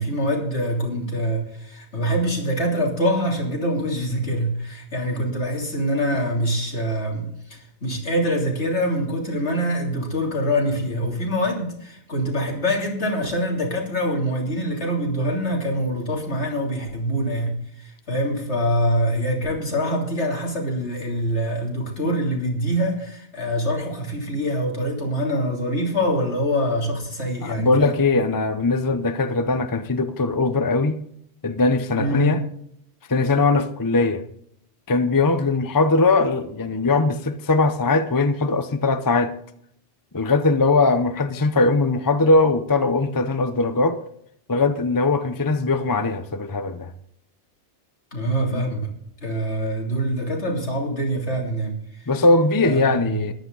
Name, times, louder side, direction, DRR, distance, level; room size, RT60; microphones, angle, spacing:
voice 1, 0.0-27.9 32.0-32.4 48.1-48.9 49.2-52.1 52.6-53.2, equal, 75° left, 3.5 m, -25 dB
voice 2, 27.4-31.0 31.4-32.4 33.1-34.2 34.9-39.3 40.1-44.0 44.5-46.9 48.5-48.6 52.1-53.3, left 3 dB, 20° left, 0.7 m, -20 dB
14.0 x 11.0 x 4.0 m
omnidirectional pair, 1.2 m